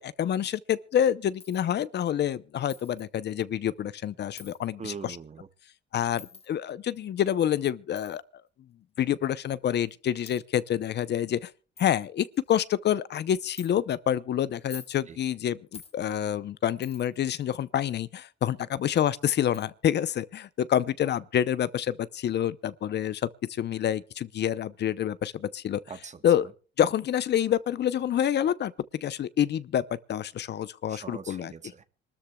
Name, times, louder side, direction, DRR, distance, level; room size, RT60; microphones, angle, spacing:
voice 1, 0.0-5.2 5.9-8.2 9.0-11.5 11.8-23.3 23.6-25.8 26.2-26.5 26.8-28.7 29.0-31.5, left 10 dB, 60° left, 0.7 m, -27 dB
Coin (dropping), 1.4-1.7 2.7-3.1 4.4-4.6 6.2-6.5 8.0-8.2 9.1-9.2 9.9-10.0 10.3-10.4 11.0-11.1 11.4-11.5 11.8-11.9 12.3-12.7 13.6-13.7 14.5-15.0 15.7-16.0 16.8-17.2 18.8-18.9 19.5-19.7, left 4 dB, 30° left, 1.7 m, -46 dB
voice 2, 4.8-5.5 15.1-15.2 25.9-26.2 30.9-31.8, right 5 dB, 35° right, 1.3 m, -41 dB
26.0 x 13.0 x 2.3 m
cardioid pair, 90°, 20 cm